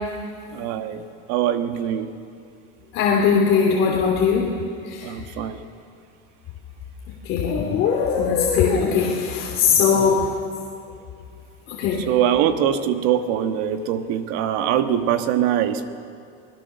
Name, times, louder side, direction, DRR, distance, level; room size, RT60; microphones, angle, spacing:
voice 1, 0.5-2.1 5.0-5.6 9.9-10.2 12.1-15.9, right 10 dB, 60° right, 8 dB, 1.6 m, -23 dB
voice 2, 2.9-4.5 4.8-5.1 7.2-10.3 11.7-12.0, left 6 dB, 45° left, -2 dB, 2.8 m, -20 dB
28.0 x 20.5 x 6.8 m, 2.4 s
cardioid pair, 160°, 29 cm